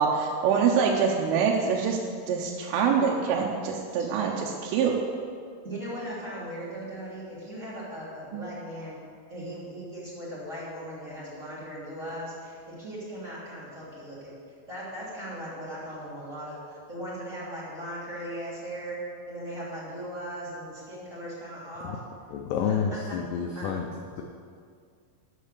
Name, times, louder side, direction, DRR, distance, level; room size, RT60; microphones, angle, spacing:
voice 1, 0.0-2.0 2.3-5.0 8.3-8.4, right 6 dB, 85° right, -1 dB, 3.5 m, -25 dB
voice 2, 5.6-9.0 9.3-14.4 14.7-19.0 19.3-22.0 22.5-23.2 23.5-23.7, equal, 20° right, -8 dB, 2.5 m, -38 dB
voice 3, 22.3-23.9 24.2-24.3, left 7 dB, 85° left, 3 dB, 2.4 m, -29 dB
12.5 x 7.4 x 6.7 m, 2.2 s
omnidirectional pair, 5.6 m